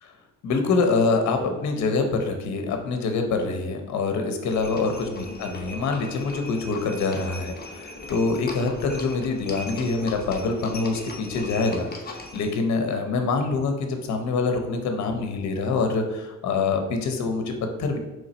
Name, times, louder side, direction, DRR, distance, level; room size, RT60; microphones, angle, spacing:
voice 1, 0.4-18.0, left 4 dB, 65° left, 5 dB, 0.7 m, -25 dB
Livestock farm animals working animals, 4.5-12.6, left 2 dB, 30° left, 0.8 m, -38 dB
3.9 x 3.2 x 4.1 m, 1.0 s
cardioid pair, 90°, 30 cm